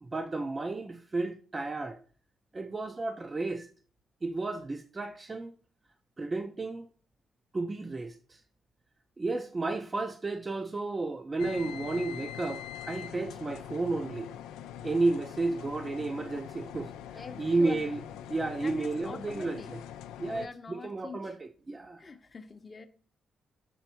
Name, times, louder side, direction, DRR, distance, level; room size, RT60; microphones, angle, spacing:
voice 1, 0.0-2.0 2.5-3.7 4.2-5.5 6.2-6.9 7.5-8.4 9.2-14.3 14.8-16.9 17.4-18.0 18.3-19.6 20.2-22.0, right 3 dB, 30° right, 0.6 m, -32 dB
sound 1, 11.4-20.5, left 10 dB, 90° left, 0.4 m, -43 dB
voice 2, 17.1-17.9 18.6-19.7 20.3-21.4 22.0-22.9, left 4 dB, 35° left, 0.7 m, -45 dB
7.0 x 3.4 x 4.3 m
supercardioid pair, 65°, 0 cm